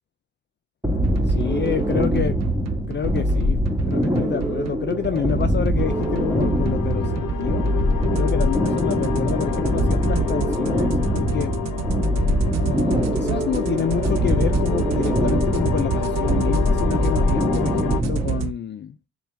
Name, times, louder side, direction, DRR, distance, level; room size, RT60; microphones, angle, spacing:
sound 1, 0.8-18.4, equal, 5° right, 1.4 m, -23 dB
sound 2, 1.0-18.5, right 9 dB, 55° right, 0.5 m, -30 dB
voice 1, 1.3-2.4 2.9-7.6 8.1-11.5 12.6-19.1, left 8 dB, 35° left, 0.4 m, -28 dB
sound 3, 5.8-18.0, left 9 dB, 65° left, 0.7 m, -30 dB
6.9 x 2.3 x 3.3 m
supercardioid pair, 60°, 34 cm